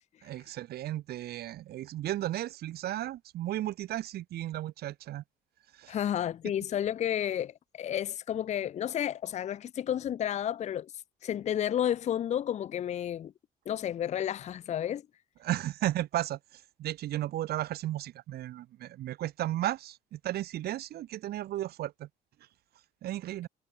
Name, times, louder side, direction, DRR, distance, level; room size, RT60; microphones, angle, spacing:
voice 1, 0.2-5.2 5.7-6.1 15.4-22.1 23.0-23.5, right 14 dB, 70° right, 2.3 m, -34 dB
voice 2, 5.9-10.9 11.2-13.3 13.7-15.0, left 10 dB, 40° left, 0.6 m, -31 dB
cardioid pair, 110°, 17 cm